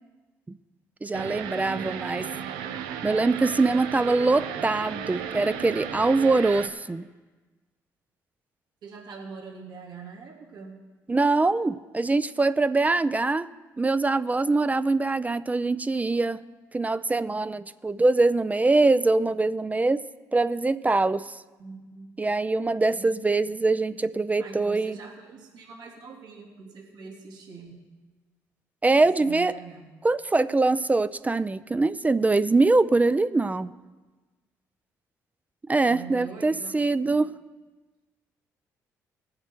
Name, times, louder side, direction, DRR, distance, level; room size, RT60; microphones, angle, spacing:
voice 1, 1.0-2.3 3.0-7.0 11.1-13.5 13.8-16.4 16.7-20.0 20.3-21.4 22.2-25.0 28.8-29.6 30.0-33.7 35.7-37.4, right 3 dB, 20° right, 14 dB, 0.5 m, -23 dB
sound 1, 1.1-6.7, right 8 dB, 85° right, 0.8 m, -34 dB
voice 2, 8.8-10.8 21.6-22.1 22.9-23.1 24.4-27.9 29.0-29.8 35.9-36.7 37.0-37.1, right 5 dB, 70° right, -2 dB, 3.2 m, -43 dB
19.0 x 7.5 x 4.6 m, 1.3 s
supercardioid pair, 60°, 8 cm